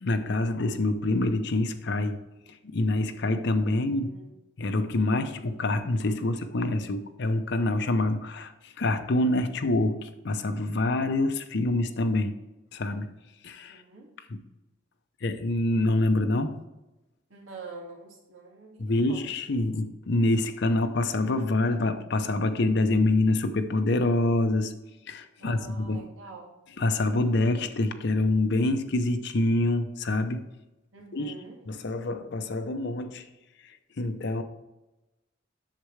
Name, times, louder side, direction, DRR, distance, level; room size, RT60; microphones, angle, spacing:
voice 1, 0.0-2.2 2.5-4.1 4.6-12.3 12.7-13.1 13.4-13.8 14.3-14.4 15.2-16.6 18.8-24.7 25.1-26.0 26.8-30.4 31.1-31.3 31.7-33.2 33.6-34.4, left 2 dB, 60° left, 8 dB, 0.6 m, -26 dB
voice 2, 3.7-4.3 13.7-14.1 17.3-19.2 25.4-26.5 30.9-31.6, right 3 dB, 90° right, 0 dB, 2.1 m, -46 dB
8.1 x 6.7 x 3.2 m, 1.0 s
head